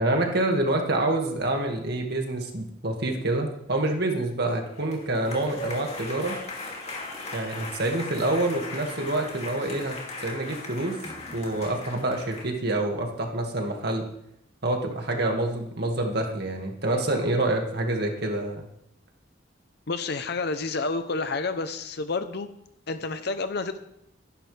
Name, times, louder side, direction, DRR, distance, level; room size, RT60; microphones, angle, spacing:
voice 1, 0.0-6.4 7.3-10.0 10.2-11.0 11.3-14.1 14.6-18.6, right 2 dB, 55° right, 2 dB, 2.1 m, -27 dB
sound 1, 4.6-12.5, left 2 dB, 35° left, 2.6 m, -38 dB
voice 2, 19.9-22.5 22.9-23.8, left 3 dB, 55° left, 9 dB, 0.8 m, -29 dB
22.5 x 11.0 x 3.4 m, 0.78 s
head